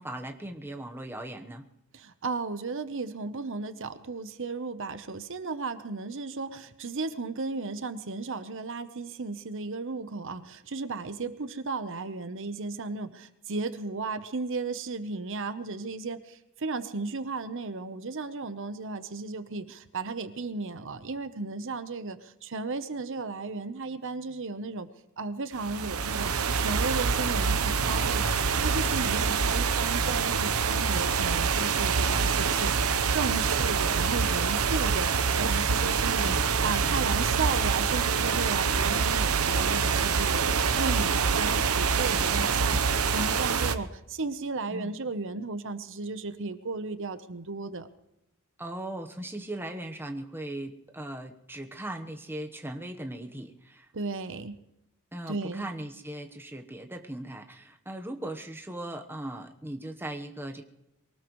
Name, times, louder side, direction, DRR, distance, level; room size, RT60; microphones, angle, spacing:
voice 1, 0.0-1.7 36.2-36.5 44.7-44.9 48.6-53.9 55.1-60.6, right 1 dB, 10° right, 4 dB, 1.1 m, -38 dB
voice 2, 1.9-24.9 25.2-32.7 33.1-42.8 43.1-47.9 53.9-54.6 55.3-55.7, right 3 dB, 65° right, 11 dB, 0.9 m, -35 dB
sound 1, 25.5-43.8, right 5 dB, 90° right, 0.9 m, -26 dB
23.0 x 18.5 x 3.2 m, 0.86 s
head